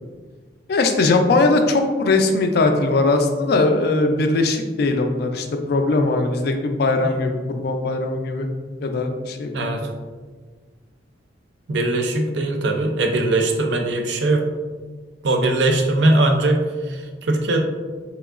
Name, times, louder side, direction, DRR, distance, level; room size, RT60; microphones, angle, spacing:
voice 1, 0.7-8.5 8.8-9.7, left 3 dB, 55° left, 5 dB, 0.3 m, -20 dB
voice 2, 9.5-9.9 11.7-14.5 15.2-17.6, right 2 dB, 65° right, 3 dB, 0.5 m, -20 dB
3.5 x 3.0 x 2.4 m, 1.4 s
head